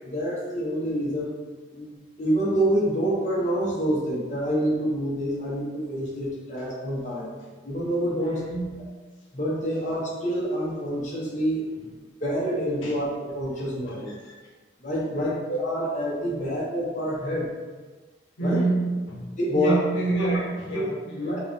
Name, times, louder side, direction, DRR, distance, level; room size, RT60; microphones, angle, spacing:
voice 1, 0.1-1.3 1.7-7.3 7.6-8.4 9.3-11.7 12.2-14.1 14.8-17.5 18.4-18.6 19.4-19.8 20.7-20.9 21.2-21.4, equal, 40° left, -6 dB, 1.1 m, -27 dB
voice 2, 8.2-8.7 12.8-13.0 13.5-14.4 15.1-15.4 18.4-21.4, right 2 dB, 80° left, -3 dB, 0.9 m, -28 dB
4.7 x 3.0 x 3.5 m, 1.3 s
head